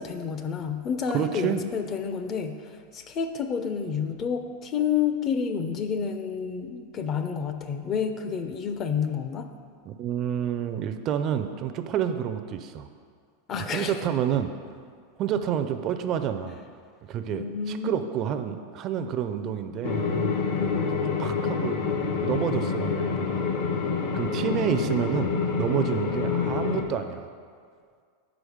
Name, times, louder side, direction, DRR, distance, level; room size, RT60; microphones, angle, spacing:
voice 1, 0.0-9.5 13.5-14.0 17.3-18.2 18.4-18.6 20.5-20.9 24.4-24.7, left 6 dB, 30° left, 7 dB, 0.5 m, -30 dB
voice 2, 1.1-1.6 9.9-12.9 13.6-14.5 15.2-16.6 17.1-20.0 21.2-21.8 22.2-23.5 24.1-27.3, right 9 dB, 35° right, 9 dB, 0.4 m, -29 dB
sound 1, 19.8-26.8, left 5 dB, 60° left, 0.8 m, -27 dB
5.0 x 4.9 x 6.3 m, 2.1 s
supercardioid pair, 140°, 0 cm